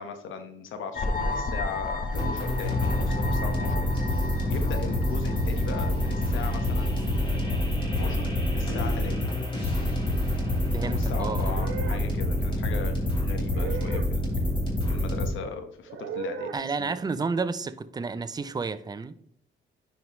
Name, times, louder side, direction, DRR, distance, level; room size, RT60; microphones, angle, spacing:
voice 1, 0.0-7.5 8.0-8.3 8.5-9.3 10.8-14.4 14.9-16.5 16.8-16.9, left 5 dB, 80° left, 1.2 m, -38 dB
sound 1, 0.9-7.7, left 2 dB, 45° left, 1.3 m, -34 dB
sound 2, 2.1-15.3, left 1 dB, 25° left, 3.3 m, -27 dB
voice 2, 10.7-11.6 16.5-19.1, right 4 dB, 20° right, 0.5 m, -31 dB
sound 3, 11.4-12.1 13.5-14.1 15.9-16.5, right 6 dB, 80° right, 0.8 m, -35 dB
10.5 x 4.7 x 3.1 m
cardioid pair, 90°, 20 cm